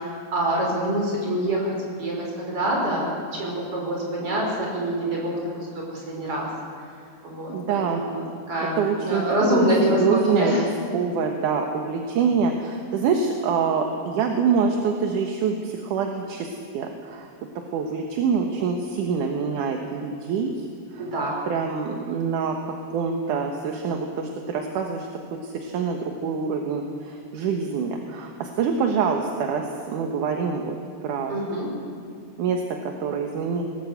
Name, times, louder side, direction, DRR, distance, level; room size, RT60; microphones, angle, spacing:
voice 1, 0.0-1.7 2.0-6.5 7.2-10.7 21.0-21.4 31.3-31.7, right 1 dB, 35° right, -2 dB, 6.3 m, -25 dB
voice 2, 7.5-8.0 8.8-9.3 9.5-10.7 10.9-17.3 17.6-20.7 20.9-21.0 21.5-30.8 31.0-31.4 32.4-33.6, right 5 dB, 65° right, 3 dB, 2.4 m, -25 dB
21.5 x 18.0 x 8.1 m, 2.3 s
omnidirectional pair, 4.5 m